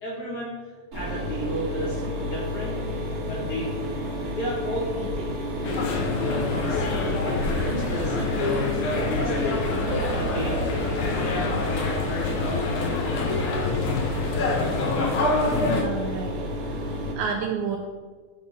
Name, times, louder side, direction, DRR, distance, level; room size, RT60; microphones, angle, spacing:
voice 1, 0.0-2.7 3.3-4.0 4.3-5.3 6.2-8.7 9.1-9.7 10.0-11.5, left 1 dB, 55° left, -6 dB, 2.1 m, -33 dB
Mechanisms, 0.9-17.1, equal, 35° right, 1.3 m, -31 dB
sound 1, 5.6-15.8, left 3 dB, 75° left, 1.8 m, -26 dB
voice 2, 15.6-17.8, right 6 dB, 80° right, 2 dB, 2.6 m, -31 dB
11.0 x 4.2 x 6.0 m, 1.5 s
omnidirectional pair, 5.6 m